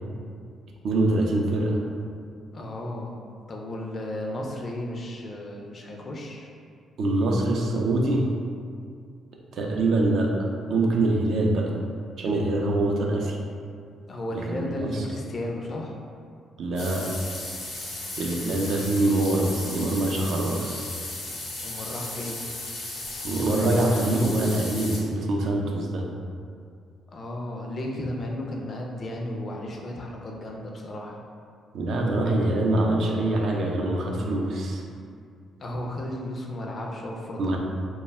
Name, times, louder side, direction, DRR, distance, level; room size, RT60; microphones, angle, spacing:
voice 1, 0.8-1.8 7.0-8.3 9.5-11.7 12.2-13.4 14.3-15.0 16.6-17.1 18.2-20.9 23.2-26.1 31.7-34.8 37.4-37.6, right 2 dB, 65° right, 0 dB, 0.3 m, -24 dB
voice 2, 2.5-3.1 3.5-6.5 14.1-16.0 21.6-22.4 27.1-31.2 35.6-37.5, left 1 dB, 45° left, 0 dB, 0.4 m, -34 dB
sound 1, 16.8-25.0, left 2 dB, 90° left, 0.7 m, -36 dB
2.2 x 2.0 x 3.2 m, 2.3 s
cardioid pair, 90°, 0 cm